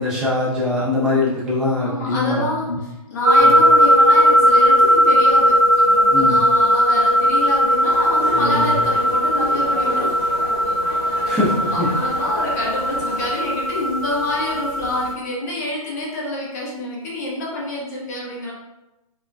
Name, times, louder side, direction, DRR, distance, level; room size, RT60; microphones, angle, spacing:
voice 1, 0.0-2.8 3.4-3.6 6.1-6.4 8.3-8.7 11.3-11.9, left 2 dB, 5° right, -9 dB, 0.4 m, -22 dB
voice 2, 1.8-10.2 11.0-11.4 11.7-18.5, left 1 dB, 25° left, -4 dB, 0.8 m, -27 dB
sound 1, 3.2-15.1, equal, 65° right, 0.9 m, -17 dB
sound 2, 7.9-13.3, right 1 dB, 25° right, 0.9 m, -33 dB
5.0 x 2.2 x 2.3 m, 0.97 s
figure-of-eight pair, 135°, 20 cm